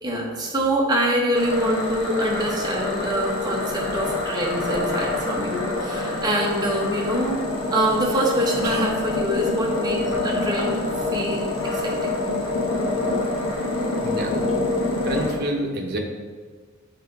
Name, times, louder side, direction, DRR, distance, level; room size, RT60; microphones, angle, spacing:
voice 1, 0.0-7.4 7.7-10.8 11.1-12.2, right 1 dB, 20° right, -3 dB, 1.3 m, -25 dB
sound 1, 1.3-15.4, left 2 dB, 75° left, 1.3 m, -26 dB
voice 2, 8.6-9.0 14.0-14.4 15.0-16.0, right 1 dB, 50° right, 1 dB, 1.1 m, -28 dB
7.4 x 4.0 x 4.8 m, 1.5 s
head